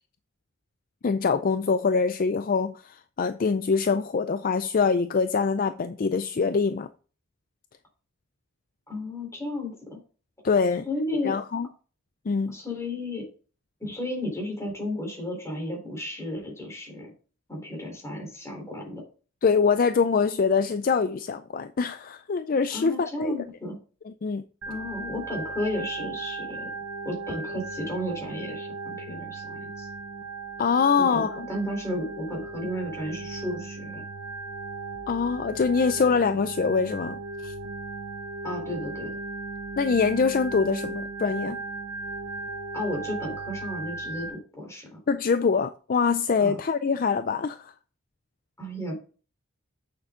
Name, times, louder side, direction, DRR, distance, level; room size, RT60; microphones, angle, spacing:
voice 1, 1.0-6.9 10.4-10.8 11.2-11.7 12.3-12.5 19.4-23.3 24.1-24.4 30.6-31.5 35.1-37.5 39.8-41.6 45.1-47.7, left 5 dB, 40° left, 0.4 m, -24 dB
voice 2, 8.9-10.0 10.8-11.3 12.5-13.3 13.8-17.1 17.5-19.0 22.7-23.8 24.7-26.7 27.0-29.9 31.0-34.0 38.4-39.1 42.7-45.0 46.4-46.6 48.6-49.0, left 1 dB, 15° left, 3.9 m, -33 dB
Organ, 24.6-44.3, right 3 dB, 90° right, 1.5 m, -37 dB
8.4 x 6.8 x 3.8 m
head